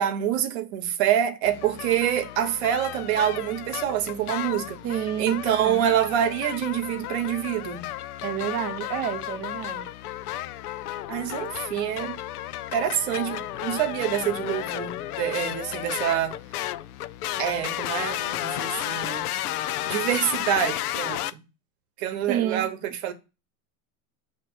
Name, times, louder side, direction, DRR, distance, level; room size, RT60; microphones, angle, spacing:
voice 1, 0.0-4.8 5.2-7.9 11.1-12.2 12.7-16.4 17.4-19.3 19.9-21.4 22.0-23.1, right 10 dB, 45° right, 1.0 m, -26 dB
sound 1, 1.4-21.3, left 13 dB, 85° left, 0.6 m, -33 dB
voice 2, 4.8-5.9 8.2-9.9 22.3-22.7, right 10 dB, 20° right, 0.5 m, -30 dB
7.8 x 3.0 x 6.0 m
supercardioid pair, 155°, 44 cm